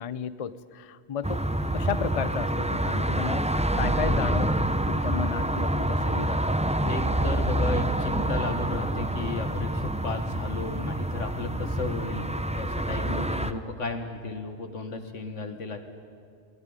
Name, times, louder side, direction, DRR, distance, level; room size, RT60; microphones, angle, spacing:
voice 1, 0.0-1.4 1.7-3.5 3.8-6.5 13.0-13.3, left 7 dB, 40° left, 15 dB, 0.5 m, -33 dB
sound 1, 1.2-13.5, right 1 dB, 10° right, 0.5 m, -27 dB
voice 2, 6.8-15.8, left 3 dB, 85° left, 7 dB, 2.1 m, -34 dB
22.0 x 17.5 x 9.7 m, 2.3 s
omnidirectional pair, 1.2 m